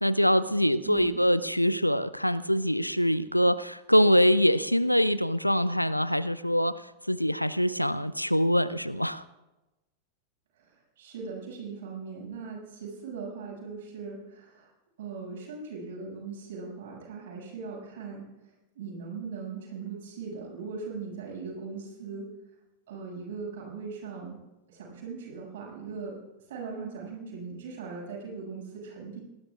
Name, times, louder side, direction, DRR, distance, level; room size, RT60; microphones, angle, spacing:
voice 1, 0.0-6.7 7.1-9.2, equal, 90° left, 18 dB, 0.5 m, -24 dB
voice 2, 0.8-1.2 10.6-14.7 15.0-18.2 18.7-22.3 22.9-24.4 24.7-26.1 26.5-29.2, right 5 dB, 60° right, -2 dB, 6.8 m, -39 dB
28.5 x 19.5 x 2.5 m, 1.0 s
figure-of-eight pair, 90°, 0 cm